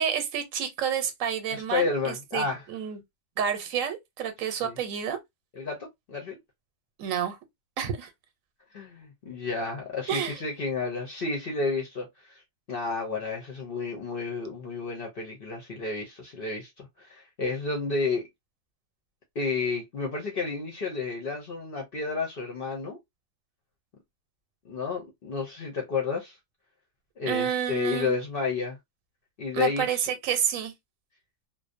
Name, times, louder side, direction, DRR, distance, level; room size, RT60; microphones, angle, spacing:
voice 1, 0.0-3.0 3.4-5.2 7.0-7.4 7.8-8.1 10.1-10.4 27.3-28.2 29.5-30.7, right 8 dB, 85° right, 1.0 m, -29 dB
voice 2, 1.5-2.6 4.6-4.7 5.6-6.4 8.7-12.4 12.7-18.2 19.4-23.0 24.6-26.4 27.2-28.8 29.4-30.0, left 4 dB, 55° left, 0.7 m, -31 dB
2.6 x 2.0 x 2.4 m
omnidirectional pair, 1.4 m